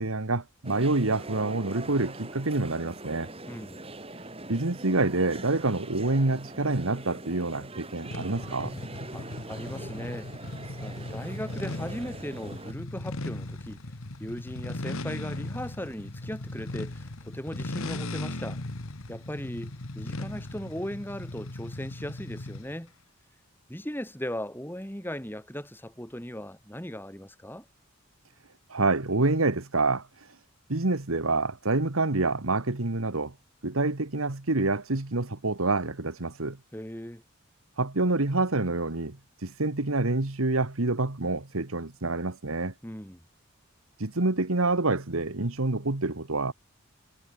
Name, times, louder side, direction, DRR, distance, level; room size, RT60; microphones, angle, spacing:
voice 1, 0.0-3.3 4.2-8.8 28.7-30.4 30.7-33.3 33.6-36.6 37.8-42.7 44.0-46.5, right 2 dB, 80° right, 1.7 m, -27 dB
sound 1, 0.6-12.7, right 2 dB, 25° right, 3.4 m, -42 dB
voice 2, 3.5-3.8 9.1-10.3 10.8-13.8 14.2-18.6 19.1-22.9 23.7-27.6 36.7-37.2 42.8-43.2, equal, 10° left, 3.9 m, -38 dB
sound 2, 8.1-22.8, left 2 dB, 80° left, 1.7 m, -38 dB
head